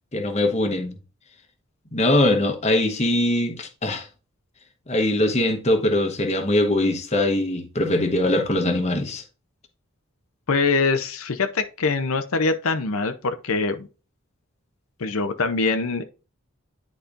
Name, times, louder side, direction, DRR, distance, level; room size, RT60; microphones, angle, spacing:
voice 1, 0.1-1.0 1.9-4.1 4.9-9.2, left 1 dB, 30° left, 1.1 m, -22 dB
voice 2, 10.5-13.9 15.0-16.0, left 4 dB, 80° left, 0.7 m, -23 dB
10.0 x 4.2 x 2.5 m
head